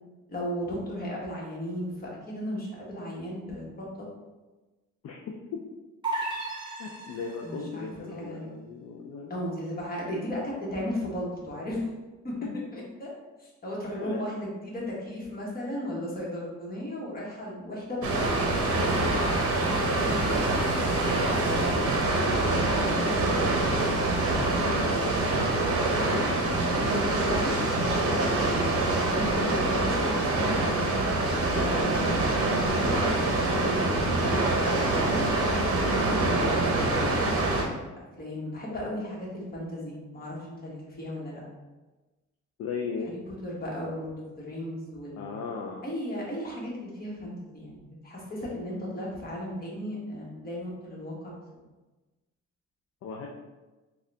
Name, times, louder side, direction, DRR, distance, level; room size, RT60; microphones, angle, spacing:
voice 1, 0.3-4.1 7.4-8.5 9.3-11.9 12.2-12.3 12.7-13.1 13.4-18.5 22.9-23.9 26.7-41.4 43.4-45.4 45.8-51.3, equal, 30° left, -4 dB, 1.3 m, -35 dB
voice 2, 5.0-5.6 6.8-9.3 12.4-12.6 14.0-14.2 21.3-21.4 22.3-23.1 24.3-26.6 42.6-43.1 45.2-45.8 53.0-53.3, left 5 dB, 55° left, 0 dB, 0.5 m, -37 dB
sound 1, 6.0-7.7, right 2 dB, 15° right, 1.2 m, -34 dB
Water, 18.0-37.6, right 2 dB, 50° right, 0.8 m, -25 dB
3.7 x 2.4 x 3.3 m, 1.2 s
cardioid pair, 90°, 30 cm